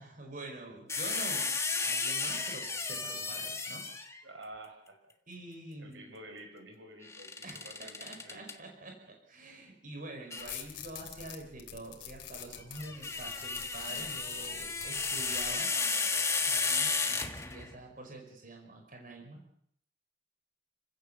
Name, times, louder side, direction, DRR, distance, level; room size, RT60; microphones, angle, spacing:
voice 1, 0.0-1.5 1.8-3.8 5.3-6.1 7.4-15.7 16.1-19.4, right 2 dB, 45° right, 2 dB, 5.3 m, -46 dB
sound 1, 0.9-4.2 7.1-8.5 10.3-10.5 12.6-17.8, left 4 dB, 15° left, 1.7 m, -33 dB
voice 2, 4.2-5.1 5.8-8.5, right 1 dB, 80° right, 4 dB, 6.0 m, -50 dB
sound 2, 10.4-15.6, left 9 dB, 75° left, 3.3 m, -47 dB
30.0 x 16.5 x 7.0 m, 0.70 s
head